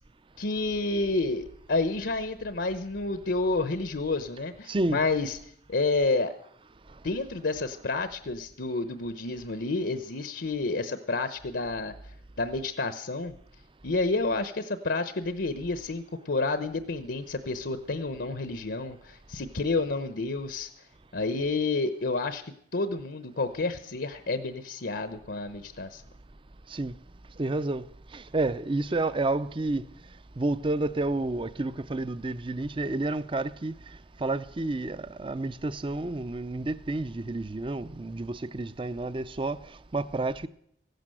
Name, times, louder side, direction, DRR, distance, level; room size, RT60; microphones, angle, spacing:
voice 1, 0.4-5.4 5.7-6.3 7.0-11.9 12.4-13.3 13.8-20.7 21.1-26.0, left 3 dB, 75° left, 1.0 m, -29 dB
voice 2, 4.7-5.0 26.7-27.0 27.4-27.8 28.1-29.9 30.4-39.6 39.9-40.5, right 2 dB, 30° right, 0.6 m, -30 dB
15.5 x 12.0 x 7.7 m
head